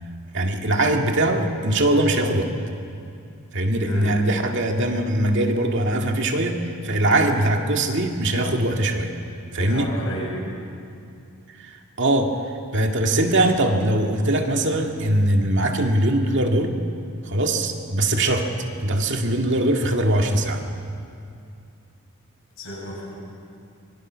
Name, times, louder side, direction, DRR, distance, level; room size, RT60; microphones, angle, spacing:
voice 1, 0.3-2.6 3.5-9.1 9.5-9.9 11.5-12.4 12.7-16.8 17.2-18.5 18.8-20.7, right 1 dB, 55° right, 3 dB, 2.1 m, -21 dB
voice 2, 9.6-10.4 22.6-23.0, equal, 60° left, -3 dB, 7.8 m, -32 dB
25.0 x 23.5 x 6.3 m, 2.5 s
head